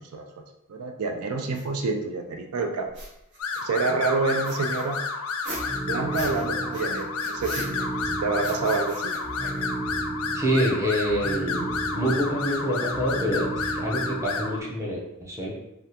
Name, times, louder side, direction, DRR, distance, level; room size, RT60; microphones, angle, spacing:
voice 1, 0.7-2.9 3.6-5.0 5.9-7.8 8.2-9.1, right 4 dB, 85° right, 4 dB, 0.4 m, -27 dB
sound 1, 1.5-1.6 2.9-3.9 4.4-6.5 6.7-8.1 8.4-9.9, right 1 dB, 55° right, 0.8 m, -41 dB
sound 2, 3.4-14.6, left 4 dB, 80° left, 0.4 m, -31 dB
sound 3, 5.5-14.7, right 2 dB, 30° right, 1.1 m, -34 dB
voice 2, 10.3-15.5, equal, 15° right, -4 dB, 0.6 m, -26 dB
3.4 x 2.4 x 2.8 m, 0.88 s
head